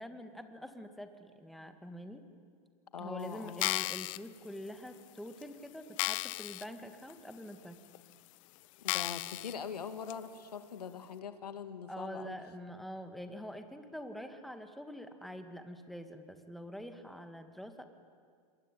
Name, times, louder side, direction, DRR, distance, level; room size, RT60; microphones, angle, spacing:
voice 1, 0.0-2.2 3.0-7.8 11.9-17.8, equal, ahead, 7 dB, 2.1 m, -45 dB
voice 2, 2.9-3.7 8.8-12.4, left 6 dB, 85° left, 10 dB, 1.9 m, -42 dB
sound 1, 3.5-4.2 4.9-5.0 5.4-5.5 6.0-6.7 7.1-7.2 7.9-8.0 8.9-9.5 10.1-10.2, left 20 dB, 55° left, 0.6 m, -34 dB
27.0 x 22.5 x 9.3 m, 2.1 s
hypercardioid pair, 105°, 20 cm